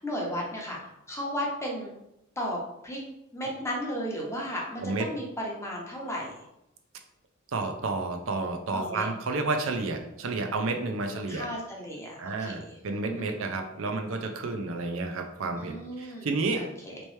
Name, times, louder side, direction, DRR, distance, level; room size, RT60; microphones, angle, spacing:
voice 1, 0.0-1.9 2.4-3.0 3.3-6.3 8.7-9.1 11.0-12.8 13.1-13.3 15.6-17.0, equal, 15° left, -2 dB, 0.7 m, -35 dB
voice 2, 7.5-11.5 12.2-16.7, right 3 dB, 80° right, 4 dB, 0.5 m, -31 dB
3.2 x 3.0 x 3.1 m, 0.85 s
head